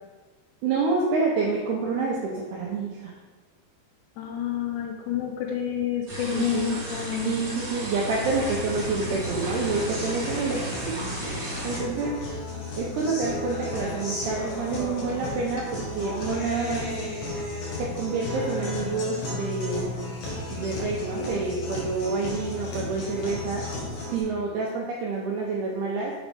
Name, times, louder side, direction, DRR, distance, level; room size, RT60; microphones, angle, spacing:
voice 1, 0.6-3.1 6.3-6.8 7.2-12.1 12.8-17.0 17.8-19.9 20.5-23.6 24.1-26.1, right 4 dB, 85° right, -2 dB, 2.3 m, -28 dB
voice 2, 4.2-7.4, left 10 dB, 85° left, 2 dB, 2.6 m, -29 dB
sound 1, 6.1-11.8, right 2 dB, 55° right, 1.2 m, -34 dB
Guitar, 8.2-24.2, left 2 dB, 60° left, 2.2 m, -34 dB
7.2 x 5.0 x 3.4 m, 1.4 s
omnidirectional pair, 5.4 m